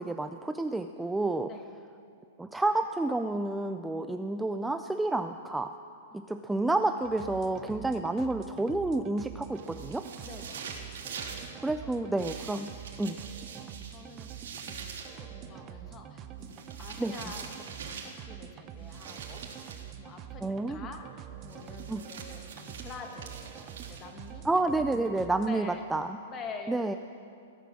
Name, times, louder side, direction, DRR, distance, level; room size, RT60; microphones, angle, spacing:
voice 1, 0.0-1.5 2.4-5.7 6.1-10.0 11.6-12.7 13.0-13.2 17.0-17.2 20.4-20.8 21.9-22.0 24.4-26.2 26.7-27.0, right 2 dB, 5° right, 8 dB, 0.3 m, -30 dB
voice 2, 1.4-1.8 6.1-6.3 10.2-10.6 11.8-11.9 13.1-13.3 13.8-19.7 20.0-23.5 23.9-24.5 25.4-25.8 26.3-27.0, left 4 dB, 20° left, 4 dB, 1.5 m, -46 dB
sound 1, 7.0-25.5, right 10 dB, 25° right, 0.7 m, -45 dB
sound 2, 9.6-11.5 12.2-15.2 16.4-18.2 18.9-19.9 21.5-24.3, right 6 dB, 80° right, 3.8 m, -44 dB
17.5 x 11.0 x 7.5 m, 2.5 s
hypercardioid pair, 160°, 0 cm